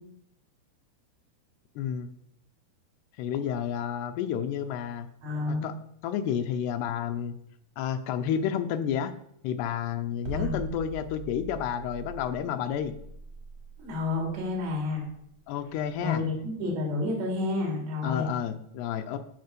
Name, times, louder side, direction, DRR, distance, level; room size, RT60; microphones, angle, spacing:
voice 1, 1.8-2.1 3.2-5.1 5.5-5.7 6.0-7.4 7.8-9.1 9.4-12.9 15.5-16.2 18.0-19.2, left 9 dB, 80° left, 8 dB, 2.7 m, -30 dB
voice 2, 5.2-5.7 10.3-10.6 13.8-15.1 16.0-18.3, left 3 dB, 85° right, 0 dB, 5.6 m, -30 dB
sound 1, 10.3-16.4, right 3 dB, 65° right, 1.7 m, -41 dB
14.0 x 4.7 x 6.8 m, 0.71 s
omnidirectional pair, 4.8 m